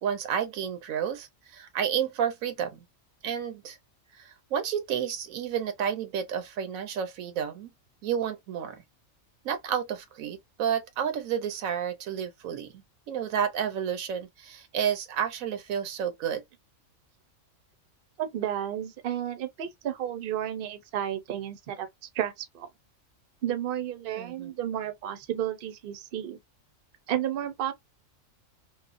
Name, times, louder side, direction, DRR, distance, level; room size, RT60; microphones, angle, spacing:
voice 1, 0.0-2.8 3.2-3.8 4.1-7.7 8.0-8.8 9.4-16.4 24.2-24.5, right 8 dB, 90° right, 1.1 m, -31 dB
voice 2, 18.2-21.9 22.1-22.7 23.4-26.4 27.1-27.7, right 11 dB, 55° right, 0.7 m, -32 dB
3.1 x 2.1 x 2.4 m
omnidirectional pair, 1.4 m